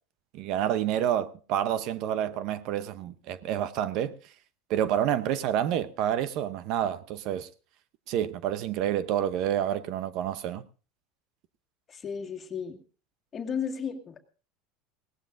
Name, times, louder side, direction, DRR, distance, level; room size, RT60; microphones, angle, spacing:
voice 1, 0.3-4.1 4.7-7.5 8.1-10.6, right 10 dB, 55° right, 0.7 m, -28 dB
voice 2, 11.9-12.8 13.3-14.2, left 7 dB, 25° left, 2.0 m, -34 dB
20.0 x 17.5 x 2.6 m
supercardioid pair, 140°, 0 cm